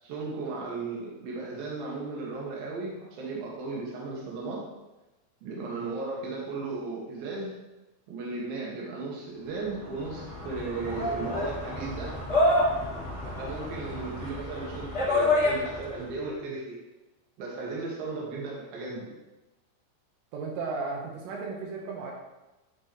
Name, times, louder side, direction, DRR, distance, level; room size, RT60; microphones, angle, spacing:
voice 1, 0.0-4.6 5.4-7.6 8.1-12.2 13.2-16.8 17.4-19.1, right 3 dB, 55° right, -4 dB, 3.2 m, -35 dB
sound 1, 9.7-16.0, left 1 dB, 45° left, 0.8 m, -28 dB
voice 2, 20.3-22.1, right 4 dB, 80° right, -1 dB, 3.8 m, -34 dB
11.5 x 6.3 x 3.2 m, 1.1 s
omnidirectional pair, 5.6 m